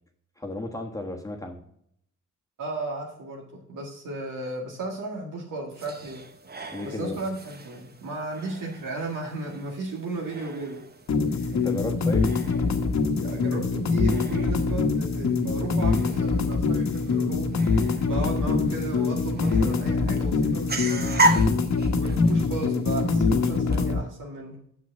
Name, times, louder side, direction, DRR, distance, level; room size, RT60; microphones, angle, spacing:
voice 1, 0.4-1.6 6.7-7.2 11.5-12.2, left 2 dB, 10° left, 1 dB, 1.3 m, -33 dB
voice 2, 2.6-6.2 6.8-10.8 13.1-21.5 22.0-24.6, right 2 dB, 75° right, -2 dB, 2.0 m, -35 dB
sound 1, 5.7-23.8, right 1 dB, 30° right, 1.0 m, -35 dB
sound 2, 11.1-24.0, left 4 dB, 60° left, 1.1 m, -24 dB
7.0 x 6.4 x 5.4 m, 0.69 s
cardioid pair, 90°, 32 cm